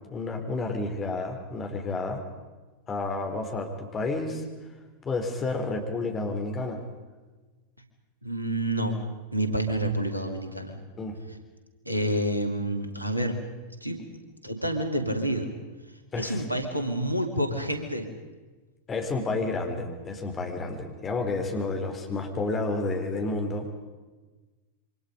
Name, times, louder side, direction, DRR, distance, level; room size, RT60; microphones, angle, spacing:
voice 1, 0.1-2.2 2.9-4.4 5.0-6.8 11.0-11.2 16.1-16.4 18.9-23.8, left 3 dB, 20° left, 3 dB, 4.2 m, -30 dB
voice 2, 8.2-9.0 9.3-10.8 11.8-13.3 13.8-14.0 14.4-15.5 16.2-18.1, right 1 dB, 85° right, 5 dB, 2.7 m, -28 dB
27.0 x 24.5 x 5.3 m, 1.3 s
figure-of-eight pair, 90°, 0 cm